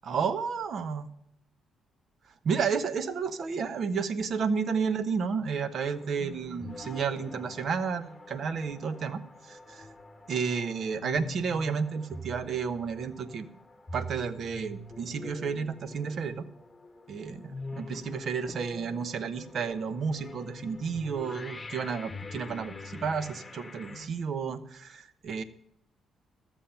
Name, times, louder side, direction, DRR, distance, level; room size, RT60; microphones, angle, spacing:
voice 1, 0.0-1.1 2.4-9.2 9.5-9.9 10.3-13.5 13.9-16.4 17.1-25.4, right 6 dB, 55° right, 13 dB, 0.9 m, -31 dB
sound 1, 5.7-24.1, left 1 dB, 15° left, 1.3 m, -44 dB
13.0 x 7.3 x 5.7 m, 0.77 s
cardioid pair, 90°, 0 cm